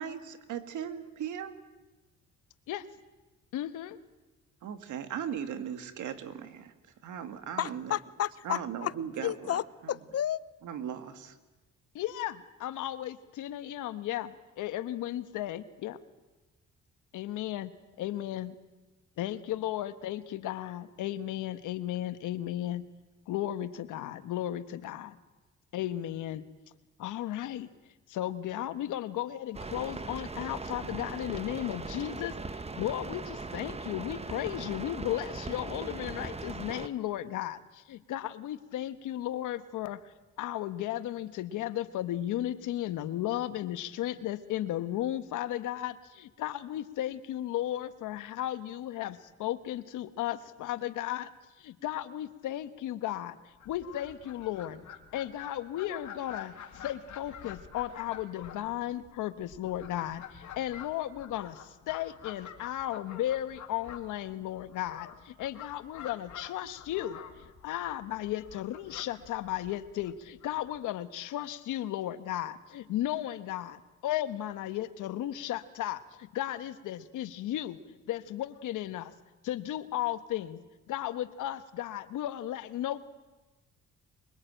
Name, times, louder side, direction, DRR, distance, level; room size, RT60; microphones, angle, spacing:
voice 1, 0.0-1.5 4.6-6.7 7.0-8.0 8.4-9.6 10.6-11.3, right 8 dB, 75° right, 2.2 m, -38 dB
voice 2, 3.5-4.0 11.9-16.0 17.1-17.7 18.0-18.6 19.2-22.8 23.3-25.2 25.7-26.4 27.0-27.7 28.1-32.4 32.8-40.1 40.4-51.3 51.6-53.4 53.6-54.8 55.1-79.1 79.4-80.6 80.9-83.0, left 13 dB, 85° left, 1.3 m, -35 dB
voice 3, 7.6-8.9 9.2-10.4, left 11 dB, 55° left, 0.8 m, -32 dB
sound 1, 29.5-36.9, right 3 dB, 20° right, 1.2 m, -39 dB
Fowl, 53.5-70.8, left 9 dB, 70° left, 2.6 m, -48 dB
24.0 x 23.0 x 9.1 m
cardioid pair, 90°, 30 cm